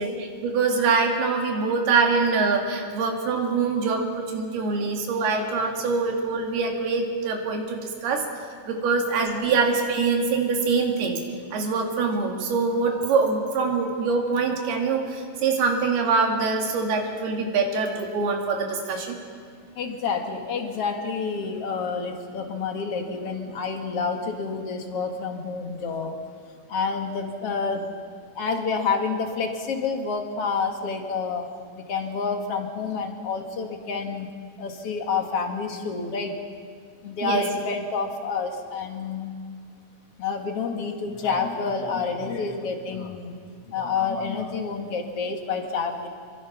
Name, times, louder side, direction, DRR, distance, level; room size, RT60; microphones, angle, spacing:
voice 1, 0.0-8.2 8.7-11.2 11.5-19.2 37.2-37.4, right 4 dB, 85° right, 2 dB, 4.2 m, -24 dB
voice 2, 19.8-26.2 26.7-28.0 28.4-31.5 31.9-36.4 37.0-39.4 40.2-43.4 43.7-46.1, left 5 dB, 50° left, 4 dB, 2.2 m, -28 dB
26.0 x 23.5 x 5.9 m, 2.1 s
omnidirectional pair, 4.4 m